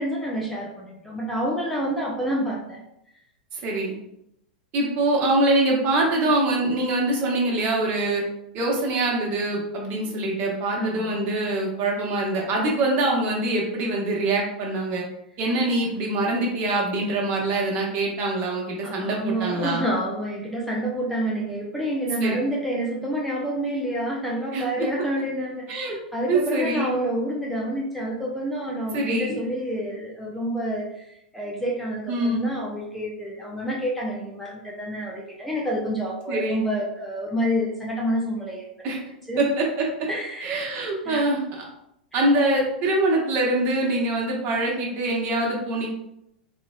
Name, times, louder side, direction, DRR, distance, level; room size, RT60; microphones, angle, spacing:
voice 1, 0.0-2.8 10.8-11.4 18.8-30.9 31.3-38.6 39.3-39.4 40.1-40.5 41.0-41.2, equal, 5° left, -4 dB, 0.6 m, -28 dB
voice 2, 3.5-4.0 4.7-8.2 8.5-15.0 15.4-19.9 22.2-22.4 24.5-24.6 25.7-26.0 26.3-27.0 28.9-29.5 32.1-32.5 36.3-36.6 38.8-39.0 39.4-39.9 40.4-41.6 42.1-45.9, right 2 dB, 35° right, -1 dB, 1.1 m, -24 dB
4.1 x 3.0 x 2.3 m, 0.79 s
figure-of-eight pair, 95°, 5 cm